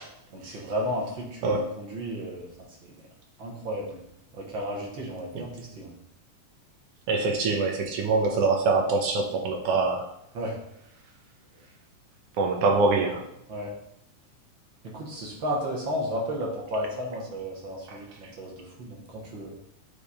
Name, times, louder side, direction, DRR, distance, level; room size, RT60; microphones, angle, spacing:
voice 1, 0.3-2.5 2.8-3.0 3.4-4.0 4.3-5.9 10.3-10.6 13.5-13.7 14.9-19.5, equal, 50° right, -3 dB, 1.6 m, -33 dB
voice 2, 7.1-10.0 12.4-13.2 17.9-18.0, right 3 dB, 70° right, 2 dB, 1.5 m, -24 dB
9.6 x 3.6 x 4.2 m, 0.77 s
omnidirectional pair, 3.6 m